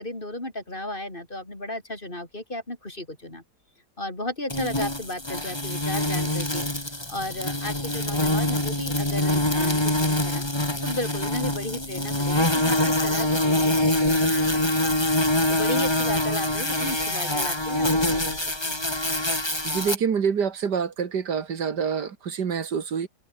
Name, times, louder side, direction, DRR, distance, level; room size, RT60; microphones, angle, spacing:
voice 1, 0.0-3.4 4.0-10.4 10.8-15.0 15.5-18.9, left 1 dB, 30° left, 5.3 m, -34 dB
sound 1, 4.5-20.0, left 1 dB, 15° left, 3.3 m, -24 dB
voice 2, 19.6-23.1, right 6 dB, 75° right, 2.3 m, -26 dB
omnidirectional pair, 1.8 m